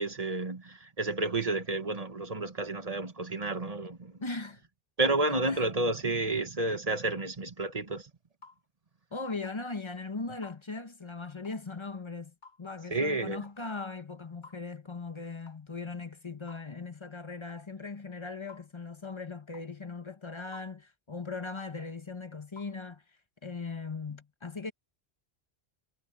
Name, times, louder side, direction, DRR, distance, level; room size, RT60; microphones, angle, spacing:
voice 1, 0.0-4.2 5.0-8.1 12.9-13.4, right 2 dB, 35° right, 1.6 m, -31 dB
voice 2, 4.2-4.6 5.5-5.7 9.1-23.0 23.4-24.7, left 3 dB, 30° left, 1.1 m, -39 dB
sound 1, 8.4-8.6 9.4-9.6 10.4-10.6 11.4-11.6 12.4-12.6 13.4-13.6 14.4-14.6 15.5-15.6 16.5-16.7 17.5-17.7 18.5-18.7 19.5-19.7 20.5-20.7 21.6-21.8 22.6-22.7, left 4 dB, 50° left, 5.5 m, -53 dB
omnidirectional pair, 1.1 m